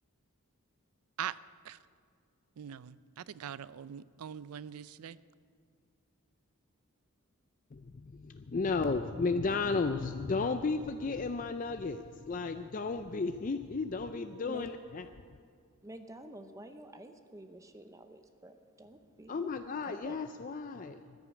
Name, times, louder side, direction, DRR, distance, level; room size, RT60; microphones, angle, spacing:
voice 1, 2.6-5.2, right 9 dB, 80° right, 18 dB, 0.4 m, -42 dB
voice 2, 7.7-15.1 19.3-21.0, left 4 dB, 35° left, 8 dB, 0.4 m, -34 dB
voice 3, 15.8-19.4 19.8-20.4, right 1 dB, 15° right, 8 dB, 0.6 m, -50 dB
14.5 x 10.5 x 8.2 m, 2.2 s
head